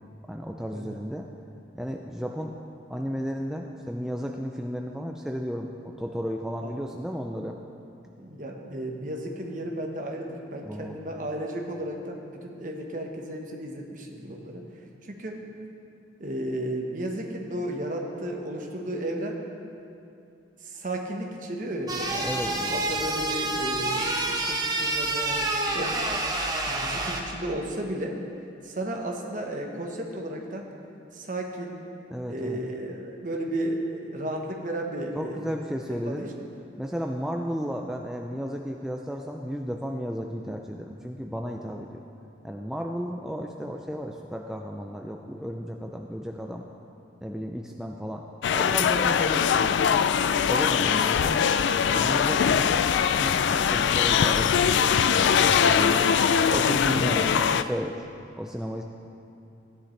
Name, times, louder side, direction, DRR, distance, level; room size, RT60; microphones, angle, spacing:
voice 1, 0.3-1.3 1.7-2.5 2.9-7.6 10.6-11.0 22.2-22.9 32.1-32.6 35.2-36.3 36.8-42.0 42.4-46.7 47.2-48.2 48.5-50.0 50.4-51.5 51.9-52.7 53.2-56.1 56.5-58.0 58.4-58.8, equal, 5° right, 1 dB, 0.4 m, -33 dB
voice 2, 8.2-14.7 15.0-15.4 16.2-19.4 20.6-26.0 26.7-28.2 28.6-30.7 31.1-31.8 32.3-35.5 35.9-36.5, right 1 dB, 45° right, 1 dB, 1.2 m, -34 dB
sound 1, 21.9-27.2, right 2 dB, 20° right, 0.8 m, -28 dB
sound 2, 48.4-57.6, left 7 dB, 75° left, 0.3 m, -22 dB
15.5 x 10.0 x 3.3 m, 2.6 s
head